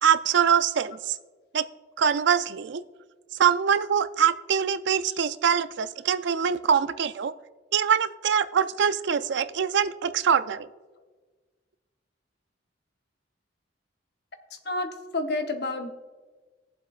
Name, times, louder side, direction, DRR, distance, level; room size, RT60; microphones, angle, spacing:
voice 1, 0.0-1.2 1.5-1.6 2.0-2.8 3.4-7.3 7.7-10.7, right 7 dB, 65° right, 13 dB, 0.4 m, -23 dB
voice 2, 14.5-15.9, left 2 dB, 60° left, 6 dB, 0.9 m, -30 dB
20.5 x 7.4 x 2.4 m, 1.4 s
head